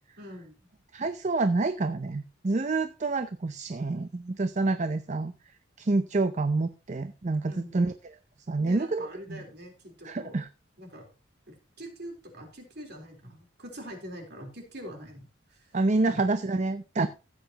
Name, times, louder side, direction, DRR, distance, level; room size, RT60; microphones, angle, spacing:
voice 1, 0.2-0.7 7.5-7.8 8.6-10.4 10.8-11.1 11.5-15.7 16.1-16.2, equal, 55° right, 2 dB, 3.7 m, -44 dB
voice 2, 0.9-5.3 5.8-7.9 8.5-9.4 10.0-10.5 15.7-17.1, right 3 dB, 35° right, 10 dB, 0.5 m, -28 dB
15.0 x 8.9 x 2.9 m, 0.30 s
head